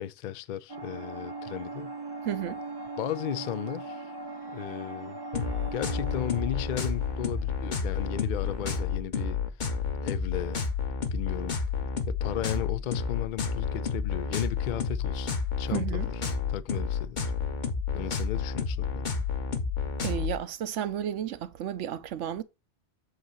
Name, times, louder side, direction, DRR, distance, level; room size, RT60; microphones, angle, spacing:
voice 1, 0.0-1.9 3.0-4.1 4.5-5.2 5.7-9.4 10.0-10.6 11.1-11.6 12.1-16.1 16.5-17.3 17.9-19.2, left 11 dB, 65° left, 0.5 m, -35 dB
sound 1, 0.7-8.7, right 3 dB, 30° right, 0.5 m, -40 dB
voice 2, 2.2-2.6 15.7-16.1 20.0-22.4, right 10 dB, 75° right, 1.0 m, -32 dB
sound 2, 5.3-20.3, left 5 dB, 40° left, 1.0 m, -30 dB
7.9 x 2.9 x 6.1 m
omnidirectional pair, 1.3 m